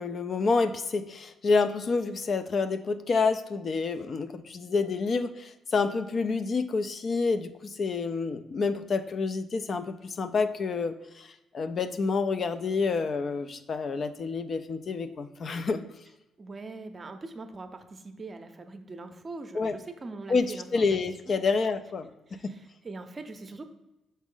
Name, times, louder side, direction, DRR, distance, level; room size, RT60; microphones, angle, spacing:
voice 1, 0.0-15.9 19.5-19.8 20.3-22.1 22.4-22.5, left 4 dB, 50° left, 10 dB, 0.4 m, -28 dB
voice 2, 16.4-21.0 21.3-21.4 22.3-23.7, right 3 dB, 35° right, 7 dB, 0.6 m, -42 dB
6.1 x 4.1 x 3.7 m, 0.97 s
cardioid pair, 90°, 0 cm